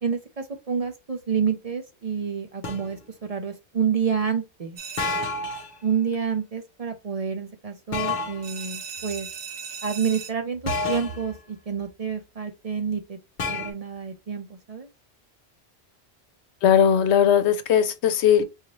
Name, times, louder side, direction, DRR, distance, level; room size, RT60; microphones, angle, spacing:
voice 1, 0.0-4.8 5.8-9.3 9.8-13.2 13.5-14.9, right 7 dB, 45° right, 0.6 m, -28 dB
sound 1, 2.6-2.9 5.0-5.7 7.9-8.5 10.7-11.3 13.4-13.7, left 3 dB, 50° left, 0.8 m, -29 dB
sound 2, 4.8-5.6 8.4-10.3, right 6 dB, 65° right, 0.9 m, -38 dB
voice 2, 16.6-18.4, left 8 dB, 80° left, 0.9 m, -19 dB
4.0 x 2.6 x 3.0 m
omnidirectional pair, 1.1 m